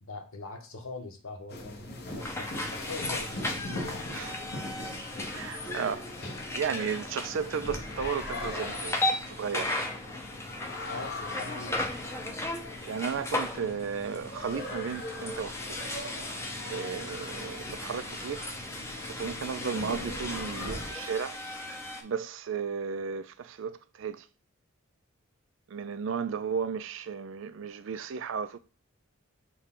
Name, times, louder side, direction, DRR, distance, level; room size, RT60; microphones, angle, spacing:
voice 1, 0.0-4.1 10.9-11.9, left 3 dB, 85° left, 1.0 m, -42 dB
sound 1, 1.5-20.9, left 2 dB, 50° left, 1.0 m, -41 dB
sound 2, 2.2-22.0, left 2 dB, 15° left, 0.5 m, -36 dB
voice 2, 5.3-6.1 6.5-10.0 12.9-15.8 16.6-18.5 19.0-21.4 22.0-24.3 25.7-28.6, right 6 dB, 65° right, 0.4 m, -34 dB
6.3 x 2.2 x 3.7 m
head